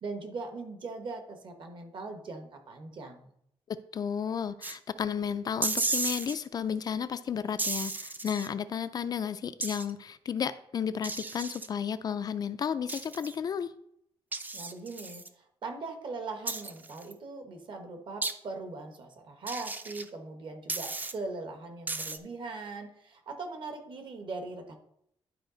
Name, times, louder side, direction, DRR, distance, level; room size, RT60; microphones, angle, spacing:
voice 1, 0.0-3.3 14.5-24.7, right 3 dB, 55° right, 6 dB, 1.3 m, -40 dB
voice 2, 3.7-13.7, left 7 dB, 40° left, 12 dB, 0.3 m, -33 dB
sound 1, 4.6-4.8 5.6-6.3 7.6-8.5 9.6-9.9 11.0-11.7 12.9-13.3 14.3-15.3 16.5-17.1 18.2-18.3 19.5-20.1 20.7-21.1 21.9-22.2, right 3 dB, 15° right, 0.5 m, -34 dB
11.0 x 4.9 x 3.9 m, 0.73 s
wide cardioid pair, 170°, 10 cm